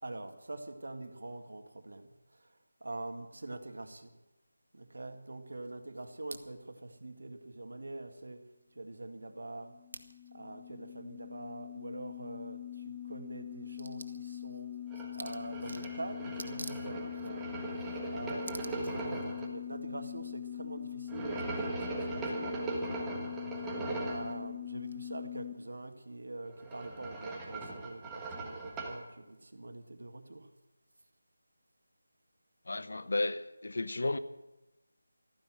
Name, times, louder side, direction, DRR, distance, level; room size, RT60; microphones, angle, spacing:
voice 1, 0.0-2.5 2.8-4.1 4.7-8.5 8.7-10.0 10.3-17.4 18.1-23.4 24.0-30.5, right 2 dB, 80° right, 2.0 m, -44 dB
sound 1, 9.4-25.5, left 11 dB, 10° left, 1.3 m, -43 dB
sound 2, 14.9-19.5 21.1-24.3 26.4-29.0, right 3 dB, 5° right, 1.4 m, -39 dB
voice 2, 32.7-34.2, left 2 dB, 70° left, 1.0 m, -33 dB
14.5 x 10.5 x 7.7 m
figure-of-eight pair, 175°, 0 cm